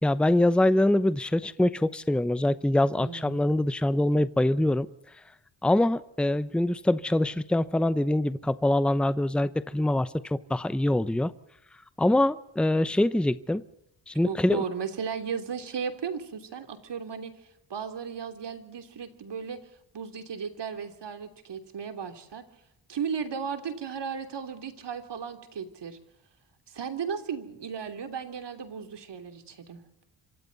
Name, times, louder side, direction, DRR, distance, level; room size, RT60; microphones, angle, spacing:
voice 1, 0.0-4.9 5.6-11.3 12.0-13.6 14.1-14.6, left 1 dB, ahead, 14 dB, 0.8 m, -24 dB
voice 2, 3.0-3.5 14.2-17.3 17.7-19.6 19.9-22.4 22.9-26.0 26.7-29.8, right 6 dB, 65° right, 7 dB, 3.1 m, -35 dB
26.0 x 26.0 x 4.1 m, 0.78 s
cardioid pair, 85°, 45 cm